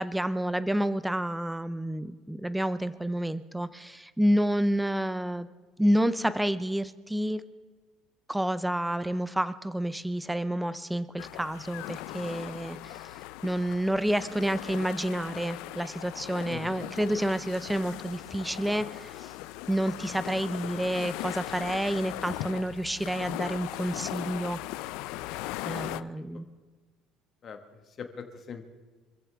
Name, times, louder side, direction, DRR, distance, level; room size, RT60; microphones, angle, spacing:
voice 1, 0.0-5.5 5.8-7.4 8.3-19.3 19.7-24.6 25.6-26.5, right 1 dB, 5° right, 13 dB, 0.5 m, -29 dB
sound 1, 11.2-26.0, left 16 dB, 70° left, 0.5 m, -39 dB
voice 2, 27.4-28.6, left 6 dB, 30° left, 5 dB, 1.6 m, -42 dB
25.5 x 14.5 x 3.5 m, 1.4 s
cardioid pair, 170°, 0 cm